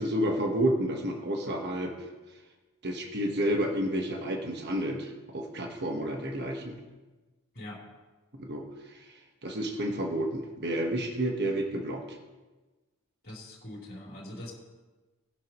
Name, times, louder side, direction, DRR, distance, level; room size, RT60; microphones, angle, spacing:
voice 1, 0.0-2.1 2.8-6.8 8.3-12.2, right 1 dB, 50° right, 2 dB, 1.4 m, -30 dB
voice 2, 13.2-14.5, left 1 dB, 45° left, -4 dB, 3.6 m, -42 dB
19.0 x 11.5 x 3.1 m, 1.2 s
head